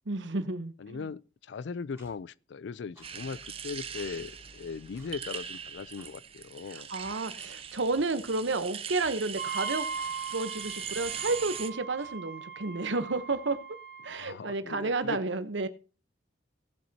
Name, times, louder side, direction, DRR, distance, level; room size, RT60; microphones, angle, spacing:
voice 1, 0.1-1.1 6.7-9.9 10.3-13.6 14.0-15.7, right 3 dB, 75° right, 0.9 m, -31 dB
voice 2, 0.8-6.9 14.1-15.2, left 5 dB, 70° left, 0.4 m, -39 dB
Clock, 2.0-2.1 3.0-3.1 4.0-4.1 5.0-5.1 6.0-6.1 7.0-7.1 8.0-8.1 9.0-9.1 10.0-10.1 11.0-11.1 12.0-12.1, right 2 dB, 15° right, 2.4 m, -56 dB
sound 1, 3.0-11.7, right 8 dB, 30° right, 0.6 m, -41 dB
Wind instrument woodwind instrument, 9.4-14.3, right 6 dB, 55° right, 1.5 m, -39 dB
17.5 x 7.5 x 2.8 m
head